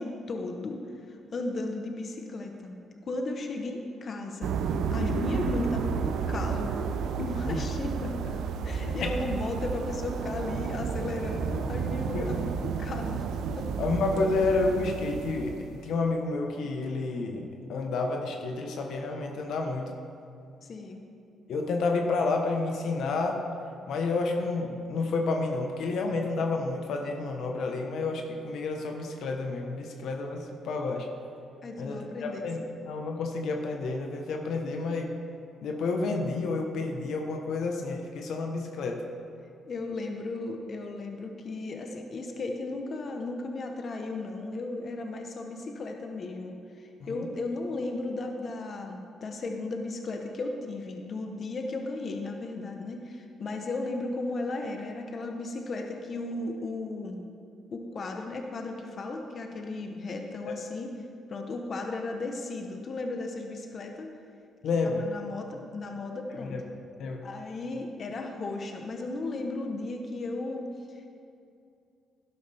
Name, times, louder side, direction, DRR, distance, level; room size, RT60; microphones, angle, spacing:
voice 1, 0.0-2.8 3.0-6.8 7.2-8.4 8.6-13.3 13.6-13.7 20.6-21.0 31.6-32.7 39.7-57.2 57.7-60.9 61.3-64.1 64.8-66.8 67.2-71.2, left 2 dB, 50° left, 3 dB, 1.1 m, -35 dB
sound 1, 4.4-15.8, right 6 dB, 80° right, 0.7 m, -31 dB
voice 2, 13.8-15.6 15.8-19.9 21.5-23.4 23.9-31.1 31.8-32.6 32.9-35.1 35.6-39.0 47.0-47.2 60.5-60.6 64.6-65.1 66.3-66.6 67.0-67.2, left 3 dB, 75° left, 3 dB, 1.1 m, -30 dB
12.5 x 11.0 x 3.5 m, 2.5 s
cardioid pair, 90°, 0 cm